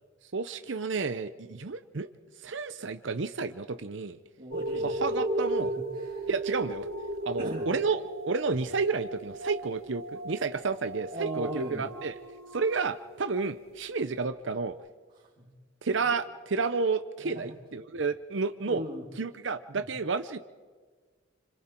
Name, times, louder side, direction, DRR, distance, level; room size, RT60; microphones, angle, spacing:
voice 1, 0.3-2.1 2.4-4.2 4.8-5.7 6.3-6.9 7.2-8.0 8.3-12.1 12.5-14.8 15.8-18.8 19.2-20.4, right 4 dB, 65° right, 10 dB, 0.7 m, -31 dB
voice 2, 4.4-5.2 5.6-6.3 7.4-7.7 11.1-11.9 15.1-15.5 17.2-17.6 18.7-19.1 19.7-19.8, right 1 dB, 40° right, -6 dB, 2.7 m, -39 dB
sound 1, 4.5-13.4 14.0-14.1, right 1 dB, 90° right, 3.4 m, -36 dB
28.5 x 27.0 x 4.5 m, 1.5 s
head